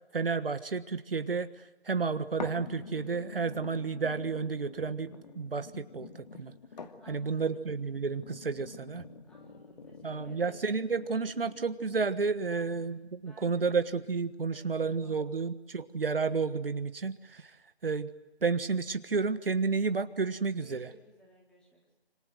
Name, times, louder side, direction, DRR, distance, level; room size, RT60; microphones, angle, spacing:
voice 1, 0.1-1.5 1.8-6.5 7.1-9.0 10.0-17.5 17.8-18.1 18.4-20.9, right 4 dB, 60° right, 11 dB, 1.5 m, -31 dB
sound 1, 2.4-12.4 13.0-13.1, left 5 dB, 40° left, 2.5 m, -47 dB
voice 2, 7.0-7.6 9.3-10.8 12.5-12.8 13.2-13.8 14.5-15.5 20.6-22.0, right 1 dB, 5° left, -2 dB, 3.6 m, -58 dB
27.0 x 26.5 x 7.9 m, 1.0 s
figure-of-eight pair, 160°, 32 cm